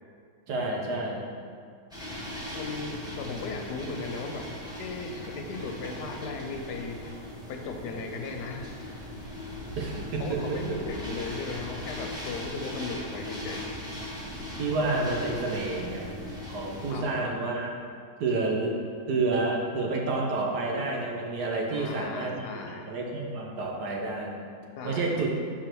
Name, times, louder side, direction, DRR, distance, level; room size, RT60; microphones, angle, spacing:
voice 1, 0.5-1.2 9.7-10.8 14.6-16.2 16.5-17.7 18.2-18.8 19.1-22.5 22.9-24.4 24.8-25.3, right 3 dB, 80° right, 0 dB, 1.5 m, -29 dB
sound 1, 1.9-16.9, left 1 dB, 5° right, 1.1 m, -39 dB
voice 2, 2.5-7.1 7.5-8.9 10.2-13.7 16.9-17.1 21.7-22.9 24.8-25.1, left 3 dB, 90° left, 3 dB, 1.3 m, -37 dB
4.8 x 4.4 x 6.0 m, 2.2 s
omnidirectional pair, 1.7 m